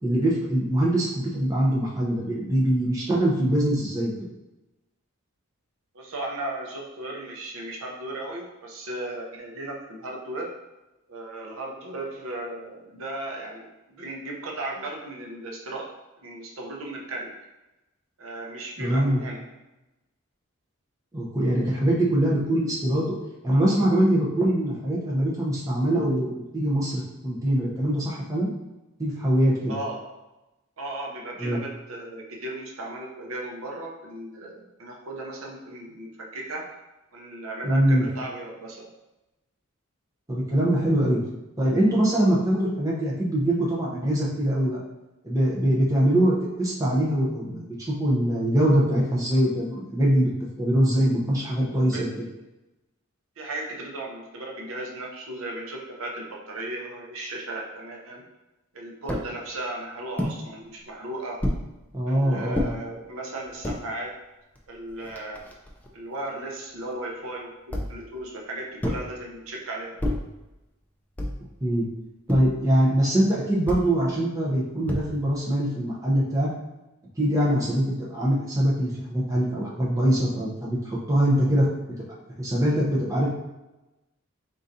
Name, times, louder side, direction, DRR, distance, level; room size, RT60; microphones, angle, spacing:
voice 1, 0.0-4.1 18.8-19.2 21.1-23.2 23.4-28.5 29.0-29.7 31.4-31.6 37.6-38.0 40.3-41.2 41.6-44.8 45.2-50.3 50.6-52.1 61.9-62.7 71.6-71.9 72.3-76.5 77.2-81.6 82.4-83.3, right 1 dB, 15° right, -5 dB, 0.7 m, -23 dB
voice 2, 5.9-10.5 11.1-15.9 16.2-17.3 18.2-19.4 29.7-30.1 30.8-36.7 37.1-38.9 51.9-52.3 53.4-58.2 58.7-61.4 62.1-64.1 64.7-65.4 65.9-70.0, right 2 dB, 70° right, -1 dB, 0.7 m, -36 dB
sound 1, 59.1-59.3 60.2-60.4 61.4-61.7 62.5-62.7 63.4-63.8 64.6-64.7 64.9-65.9 67.7-68.1 68.8-69.1 70.0-70.3 71.2-71.5 72.3-72.6 73.7-73.9 74.9-75.3, left 1 dB, 5° left, 0.3 m, -29 dB
4.0 x 3.7 x 2.6 m, 1.0 s
head